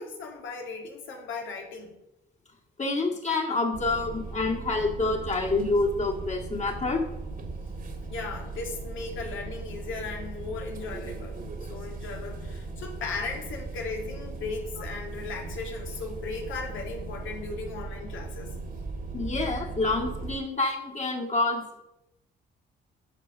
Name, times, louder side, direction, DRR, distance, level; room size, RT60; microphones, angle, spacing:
voice 1, 0.0-2.0 8.1-18.5, left 4 dB, 80° left, 1 dB, 2.2 m, -37 dB
voice 2, 2.8-7.0 19.1-21.8, left 3 dB, 35° left, 1 dB, 2.1 m, -27 dB
sound 1, 3.7-20.4, right 3 dB, 45° right, 1.8 m, -38 dB
12.5 x 4.9 x 5.5 m, 0.90 s
cardioid pair, 90°, 20 cm